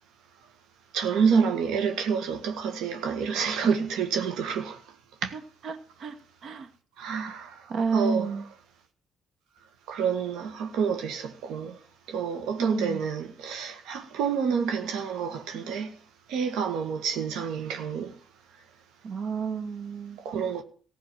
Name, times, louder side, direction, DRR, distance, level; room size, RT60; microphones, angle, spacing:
voice 1, 0.9-4.8 5.2-5.4 7.0-8.4 9.9-11.8 12.1-16.0 16.3-18.2 20.2-20.6, right 6 dB, 85° right, 1.8 m, -28 dB
voice 2, 5.3-6.2 6.4-6.7 7.7-8.4 12.6-13.0 19.0-20.2, right 5 dB, 55° right, 1.8 m, -30 dB
15.5 x 6.3 x 9.0 m
cardioid pair, 105°, 0 cm